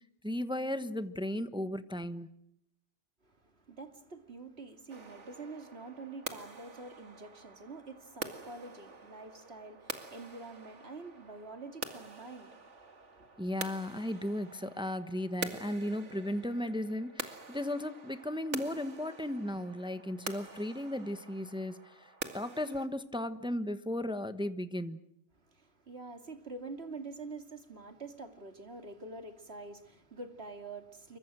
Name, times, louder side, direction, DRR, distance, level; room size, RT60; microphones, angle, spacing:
voice 1, 0.2-2.3 13.4-25.0, left 1 dB, 5° right, 1.1 m, -35 dB
voice 2, 3.2-13.4 25.4-31.2, right 3 dB, 60° right, 2.8 m, -46 dB
sound 1, 4.9-22.9, right 4 dB, 80° right, 2.4 m, -46 dB
28.5 x 24.0 x 6.2 m
omnidirectional pair, 1.2 m